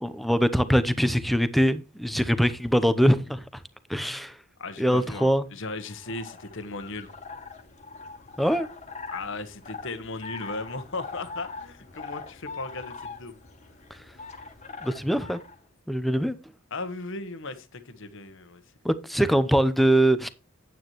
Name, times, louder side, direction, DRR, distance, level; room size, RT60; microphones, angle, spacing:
voice 1, 0.0-3.4 3.9-4.3 4.8-5.5 8.4-8.7 14.8-15.4 15.9-16.3 18.8-20.3, equal, ahead, 0.7 m, -22 dB
voice 2, 4.6-7.1 9.1-13.4 16.7-18.6, left 3 dB, 60° left, 1.2 m, -36 dB
sound 1, 5.9-15.6, left 4 dB, 30° left, 1.6 m, -42 dB
9.3 x 9.3 x 3.0 m
head